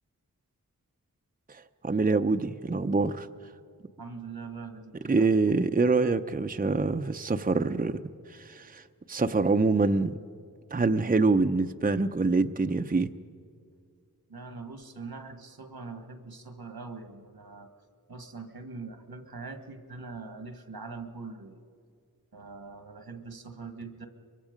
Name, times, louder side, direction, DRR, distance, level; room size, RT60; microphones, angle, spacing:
voice 1, 1.5-3.3 5.1-8.0 8.3-8.8 9.1-10.2 10.7-13.1, right 3 dB, 25° right, 8 dB, 0.6 m, -25 dB
voice 2, 4.0-5.5 14.3-17.7 18.1-21.6 22.3-24.1, right 4 dB, 85° right, 7 dB, 1.6 m, -42 dB
23.5 x 23.0 x 5.2 m, 2.2 s
wide cardioid pair, 45°, 36 cm